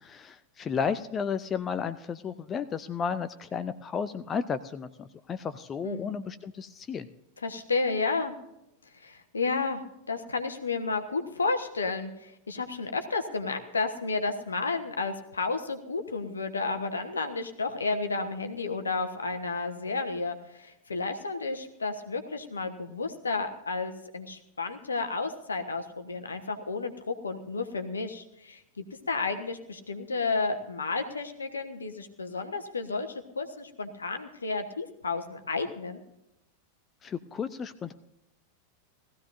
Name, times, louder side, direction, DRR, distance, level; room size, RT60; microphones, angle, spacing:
voice 1, 0.0-7.1 37.0-37.9, left 6 dB, 25° left, 12 dB, 0.5 m, -33 dB
voice 2, 5.8-6.2 7.4-8.3 8.9-9.8 10.1-36.0, left 3 dB, 75° left, 7 dB, 1.2 m, -32 dB
18.5 x 14.5 x 2.6 m, 0.85 s
figure-of-eight pair, 90°, 0 cm